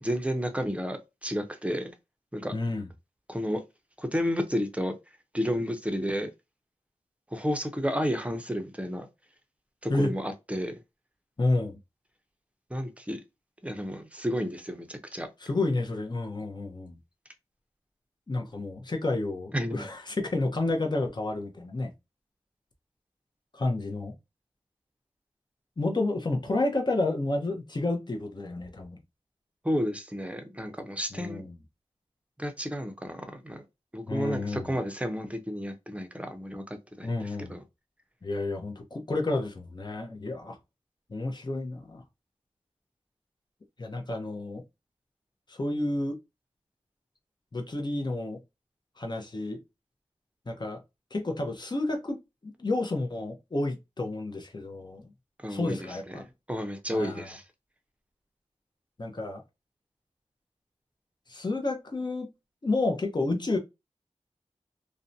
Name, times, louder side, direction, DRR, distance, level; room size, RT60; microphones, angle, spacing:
voice 1, 0.0-1.9 2.3-2.5 3.3-3.6 4.0-4.9 5.3-6.3 7.3-9.1 9.8-10.7 12.7-13.2 13.6-15.3 19.5-19.9 29.6-31.4 32.4-33.6 33.9-37.6 55.4-55.8 56.1-56.2 56.5-57.4, equal, 10° right, 0.6 m, -31 dB
voice 2, 2.5-2.9 9.9-10.1 11.4-11.8 15.4-17.0 18.3-21.9 23.5-24.1 25.8-29.0 31.1-31.6 34.0-34.7 37.0-37.6 38.2-40.6 41.1-42.0 43.8-44.6 45.5-46.2 47.5-48.4 49.0-49.6 50.5-50.8 51.1-52.2 52.4-55.1 55.5-56.3 56.9-57.3 59.0-59.4 61.3-62.3 62.6-63.6, left 2 dB, 40° left, 0.7 m, -30 dB
2.6 x 2.1 x 2.6 m
cardioid pair, 50°, 12 cm